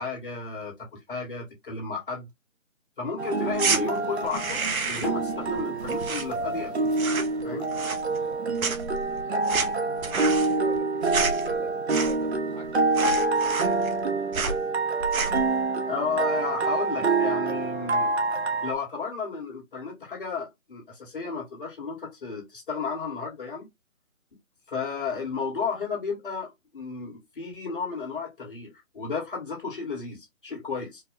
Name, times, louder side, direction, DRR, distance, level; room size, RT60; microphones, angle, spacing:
voice 1, 0.0-2.3 3.0-7.0 7.4-7.7 15.8-18.1 18.6-23.7 24.7-31.0, left 5 dB, 40° left, 1.8 m, -33 dB
sound 1, 3.2-18.7, right 3 dB, 55° right, 0.8 m, -27 dB
sound 2, 3.5-3.8 4.2-5.2 5.5-6.7 6.9-7.4 7.7-8.3 8.6-12.4 12.6-12.7 12.9-14.0 14.3-14.6 15.0-15.5, right 4 dB, 90° right, 1.1 m, -30 dB
voice 2, 8.4-14.0, left 2 dB, 5° left, 1.2 m, -47 dB
4.6 x 2.2 x 3.3 m
hypercardioid pair, 170°, 41 cm